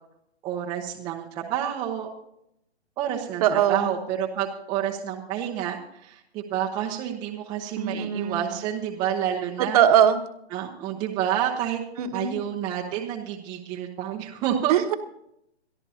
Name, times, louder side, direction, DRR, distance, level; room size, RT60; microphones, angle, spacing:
voice 1, 0.4-2.1 3.0-9.8 10.5-11.8 12.1-14.7, right 10 dB, 10° right, 0 dB, 0.7 m, -29 dB
voice 2, 3.4-3.9 7.8-8.5 9.6-10.2 12.0-12.4 14.7-14.9, right 9 dB, 35° right, 7 dB, 1.2 m, -21 dB
22.5 x 13.5 x 2.8 m, 0.78 s
hypercardioid pair, 150°, 34 cm